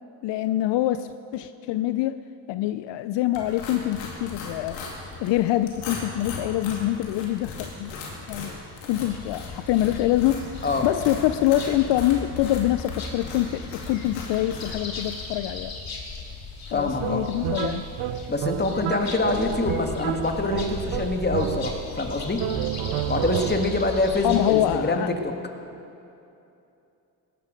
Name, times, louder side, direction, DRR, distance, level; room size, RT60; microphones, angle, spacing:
voice 1, 0.2-2.2 2.5-4.8 5.2-8.0 8.3-8.6 8.9-10.4 10.8-15.7 16.7-17.9 24.2-25.1, left 13 dB, 75° left, 12 dB, 0.6 m, -25 dB
sound 1, 3.3-15.2, left 3 dB, 90° left, 2.4 m, -38 dB
sound 2, 9.0-24.8, left 4 dB, 55° left, 2.7 m, -37 dB
voice 2, 16.7-17.2 18.3-22.4 23.1-25.3, left 2 dB, 25° left, 4 dB, 1.9 m, -25 dB
sound 3, 17.0-22.0 22.4-23.9, right 12 dB, 70° right, 0.7 m, -31 dB
17.0 x 13.0 x 5.2 m, 2.8 s
supercardioid pair, 65°, 44 cm